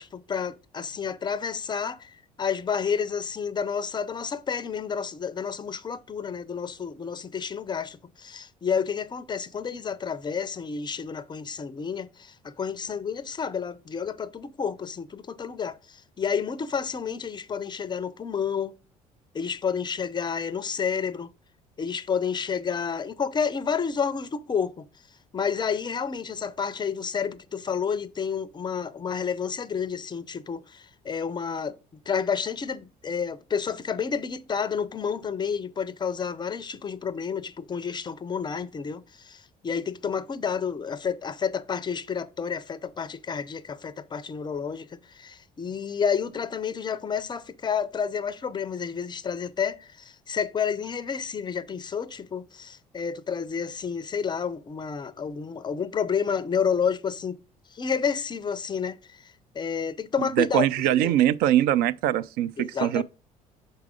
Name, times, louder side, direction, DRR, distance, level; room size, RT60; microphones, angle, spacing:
voice 1, 0.0-18.7 19.3-21.3 21.8-24.9 25.3-31.8 32.1-57.4 57.7-60.7 61.0-61.1 62.6-63.0, left 6 dB, 25° left, 0.5 m, -30 dB
voice 2, 60.2-63.0, right 12 dB, 55° right, 0.4 m, -22 dB
6.7 x 4.6 x 3.7 m
figure-of-eight pair, 55°, 19 cm